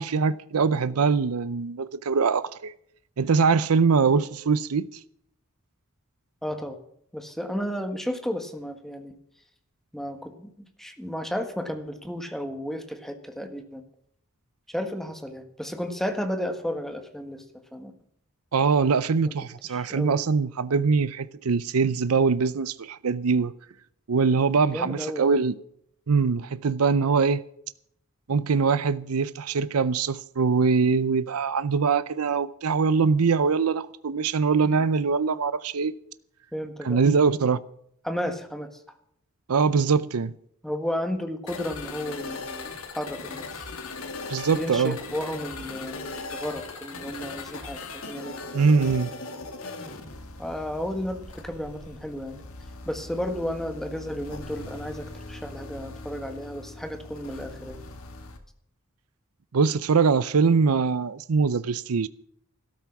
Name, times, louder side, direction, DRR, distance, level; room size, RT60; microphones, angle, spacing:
voice 1, 0.0-2.7 3.2-4.9 18.5-23.5 24.1-25.5 26.1-27.4 28.3-35.9 36.8-37.6 39.5-40.3 44.3-45.0 48.5-49.1 59.5-62.1, right 5 dB, 80° right, 0.6 m, -23 dB
voice 2, 6.4-6.8 7.1-9.1 9.9-10.5 10.8-13.8 14.7-17.4 17.7-17.9 19.2-19.3 19.6-20.2 24.6-25.4 34.6-34.8 36.5-37.0 38.0-38.7 40.6-42.7 42.9-43.4 44.5-48.4 50.4-52.4 52.9-57.8, equal, ahead, 1.6 m, -33 dB
sound 1, 41.5-58.4, left 3 dB, 70° left, 2.1 m, -39 dB
13.0 x 13.0 x 5.9 m
head